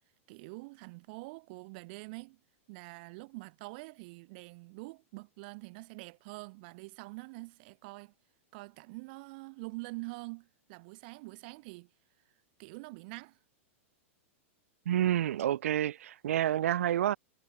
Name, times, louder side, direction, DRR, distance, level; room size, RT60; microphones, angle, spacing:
voice 1, 0.3-2.4 2.7-8.1 8.5-11.9 12.6-13.4, right 27 dB, 45° right, 2.2 m, -45 dB
voice 2, 14.9-17.2, right 11 dB, 85° right, 0.4 m, -29 dB
supercardioid pair, 155°, 7 cm